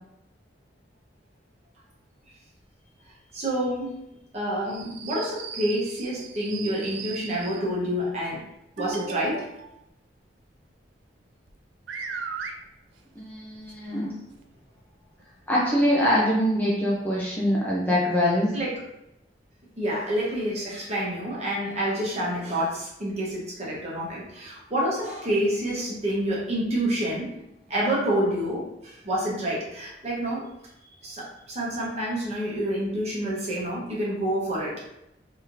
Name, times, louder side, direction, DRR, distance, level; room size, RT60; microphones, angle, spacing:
voice 1, 3.3-3.9 4.3-8.4 8.8-9.5 18.5-18.8 19.8-27.3 27.7-30.5 31.0-34.9, right 1 dB, 35° right, -5 dB, 1.0 m, -28 dB
sound 1, 4.7-7.7 8.8-9.7 11.5-11.6 11.9-12.5 13.7-13.8 14.3-14.4 15.2-15.3, right 5 dB, 80° right, 0.4 m, -37 dB
voice 2, 13.2-14.1 15.5-18.5, equal, 10° left, -6 dB, 0.5 m, -23 dB
3.2 x 2.8 x 2.5 m, 0.84 s
head